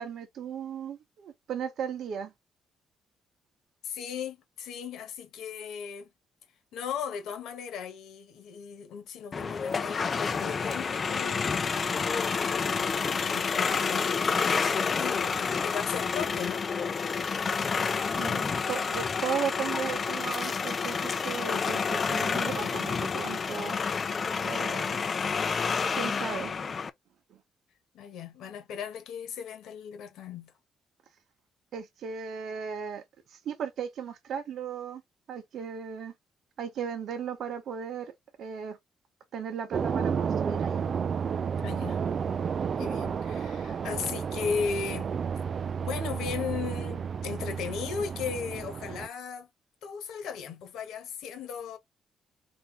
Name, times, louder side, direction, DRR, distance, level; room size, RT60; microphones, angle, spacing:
voice 1, 0.0-2.3 18.1-23.8 24.4-25.0 25.9-26.5 27.3-27.4 31.7-33.0 33.3-35.0 35.3-36.1 36.6-38.8 39.3-40.9, right 7 dB, 70° right, 0.9 m, -36 dB
voice 2, 3.8-6.1 6.7-11.6 12.8-16.7 27.9-30.5 41.6-42.0 42.8-45.1 45.8-49.5 49.8-51.8, left 6 dB, 80° left, 1.4 m, -36 dB
sound 1, 9.3-26.9, left 5 dB, 40° left, 0.6 m, -29 dB
sound 2, 39.7-49.1, right 6 dB, 50° right, 0.3 m, -31 dB
4.3 x 2.7 x 3.5 m
cardioid pair, 90°, 0 cm